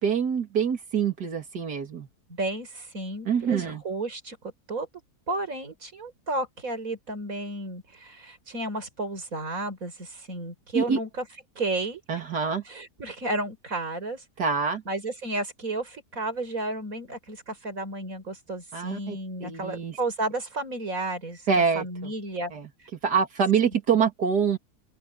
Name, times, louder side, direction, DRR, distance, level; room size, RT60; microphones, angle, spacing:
voice 1, 0.0-2.1 3.2-3.8 10.7-11.0 12.1-12.6 14.4-14.8 18.7-20.0 21.5-22.1 22.5-22.7 23.0-24.6, right 6 dB, 90° right, 3.0 m, -25 dB
voice 2, 2.3-4.9 5.3-11.2 11.5-12.0 12.7-14.2 14.8-21.4 21.7-22.5, right 2 dB, 55° right, 5.1 m, -32 dB
open air
omnidirectional pair, 1.7 m